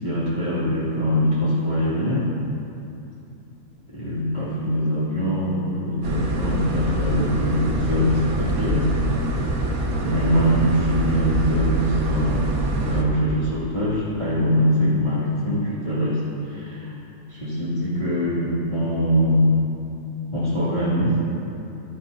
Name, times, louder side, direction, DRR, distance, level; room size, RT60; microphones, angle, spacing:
voice 1, 0.0-2.3 3.9-8.9 10.0-16.2 16.5-16.9 17.3-19.6 20.3-21.2, equal, 25° left, -12 dB, 2.7 m, -23 dB
sound 1, 6.0-13.0, right 2 dB, 65° right, 1.5 m, -25 dB
15.5 x 12.0 x 2.8 m, 2.8 s
omnidirectional pair, 1.7 m